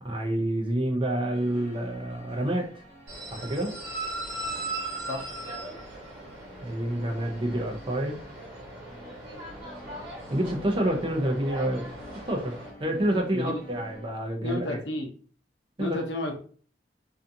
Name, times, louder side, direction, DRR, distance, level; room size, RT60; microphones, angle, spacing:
voice 1, 0.0-2.8 3.3-3.8 6.6-8.2 10.3-11.9 12.3-14.8 15.8-16.0, right 1 dB, 30° right, 2 dB, 0.5 m, -28 dB
sound 1, 1.3-14.1, equal, 45° left, 1.1 m, -50 dB
sound 2, 3.1-12.7, right 2 dB, 55° right, 1.4 m, -39 dB
voice 2, 14.4-15.1 15.8-16.4, left 2 dB, 85° left, 2 dB, 0.7 m, -31 dB
2.5 x 2.4 x 2.6 m, 0.42 s
head